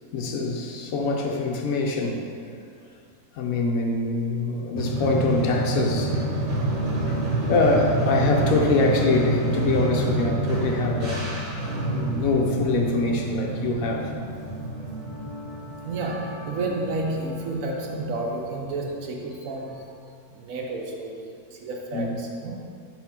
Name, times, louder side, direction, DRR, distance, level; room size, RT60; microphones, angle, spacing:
voice 1, 0.1-2.2 3.3-6.5 7.1-7.2 7.5-11.3 11.9-14.1 21.9-22.2, left 3 dB, 70° left, 1 dB, 1.0 m, -24 dB
sound 1, 4.8-18.9, right 2 dB, 50° right, 1.5 m, -28 dB
voice 2, 15.8-19.9 20.3-22.6, right 2 dB, 65° right, 0 dB, 1.0 m, -31 dB
4.4 x 4.1 x 5.6 m, 2.3 s
omnidirectional pair, 1.6 m